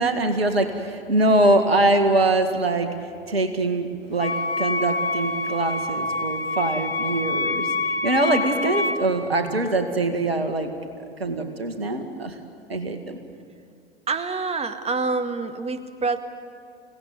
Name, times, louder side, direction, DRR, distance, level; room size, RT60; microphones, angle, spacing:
voice 1, 0.0-10.7 11.2-12.4 12.7-13.2, right 2 dB, 85° right, 7 dB, 2.1 m, -23 dB
Wind instrument woodwind instrument, 4.2-9.1, left 2 dB, 70° left, 1.4 m, -26 dB
voice 2, 14.1-16.2, right 4 dB, 20° right, 8 dB, 1.9 m, -27 dB
29.0 x 17.5 x 9.6 m, 2.3 s
figure-of-eight pair, 90°, 30 cm